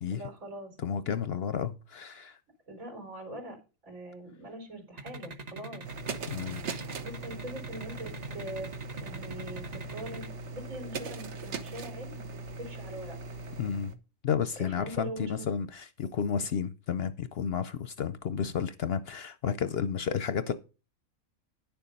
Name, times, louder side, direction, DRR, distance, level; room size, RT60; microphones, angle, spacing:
voice 1, 0.1-0.8 2.7-3.6 3.8-5.9 7.0-8.7 9.0-12.3 12.6-13.2 14.6-15.4, right 1 dB, 75° right, 4.4 m, -42 dB
voice 2, 0.8-2.4 6.3-6.6 13.6-13.9 14.2-20.5, left 7 dB, 60° left, 0.7 m, -32 dB
sound 1, 5.0-10.3, right 3 dB, 35° right, 1.0 m, -42 dB
sound 2, 5.8-13.9, right 3 dB, 60° right, 1.2 m, -40 dB
10.0 x 7.1 x 5.3 m
omnidirectional pair, 1.4 m